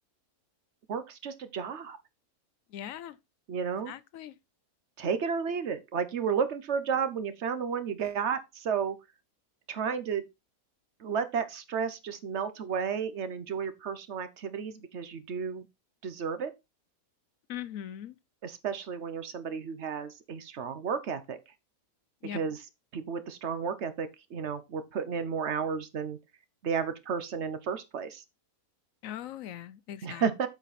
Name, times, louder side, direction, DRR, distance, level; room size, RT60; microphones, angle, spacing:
voice 1, 0.9-2.0 3.5-3.9 5.0-9.0 9.7-10.3 11.0-15.7 16.0-16.5 18.4-21.4 22.3-22.6 22.9-26.2 26.6-28.2 30.0-30.5, right 6 dB, 55° right, 1.0 m, -32 dB
voice 2, 2.7-3.2 3.9-4.3 17.5-18.2 22.2-22.4 29.0-30.2, left 11 dB, 70° left, 0.9 m, -40 dB
8.3 x 5.0 x 4.1 m
omnidirectional pair, 1.6 m